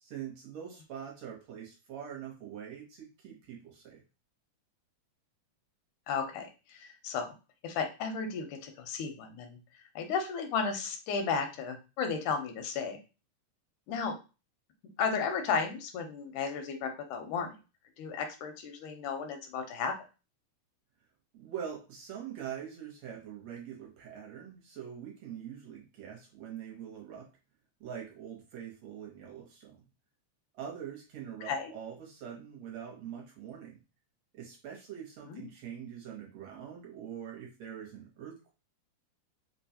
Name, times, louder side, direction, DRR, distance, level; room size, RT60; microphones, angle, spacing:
voice 1, 0.0-4.0 21.3-27.3 27.8-29.8 30.5-33.8 34.3-38.5, right 9 dB, 70° right, -1 dB, 1.9 m, -44 dB
voice 2, 6.1-7.3 7.6-9.6 10.0-13.0 13.9-14.2 15.0-17.6 18.0-19.9 31.5-31.7 35.3-35.5, left 5 dB, 85° left, 5 dB, 2.1 m, -34 dB
4.7 x 2.2 x 2.7 m, 0.31 s
omnidirectional pair, 3.4 m